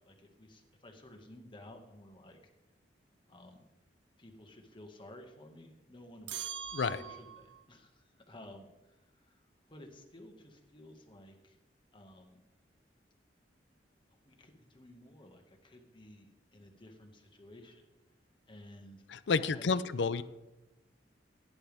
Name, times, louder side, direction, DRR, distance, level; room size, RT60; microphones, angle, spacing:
voice 1, 0.0-2.4 3.3-3.6 4.2-6.5 6.9-11.6 11.9-12.4 14.1-17.9 18.5-19.1 19.4-20.2, left 1 dB, 30° left, 3 dB, 1.9 m, -54 dB
sound 1, 6.3-7.6, right 8 dB, 90° right, 0.8 m, -42 dB
voice 2, 19.1-20.2, left 4 dB, 75° left, 16 dB, 0.5 m, -30 dB
17.5 x 10.0 x 3.5 m, 0.99 s
head